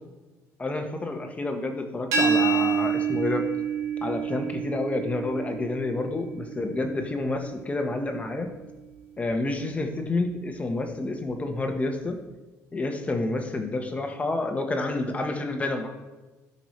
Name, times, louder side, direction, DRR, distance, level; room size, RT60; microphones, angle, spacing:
voice 1, 0.6-3.5 4.0-8.5 9.2-12.2 12.7-15.9, left 2 dB, 20° left, 4 dB, 1.2 m, -29 dB
sound 1, 2.1-7.9, right 6 dB, 85° right, 2.9 m, -28 dB
12.5 x 5.5 x 3.2 m, 1.2 s
cardioid pair, 95°, 6 cm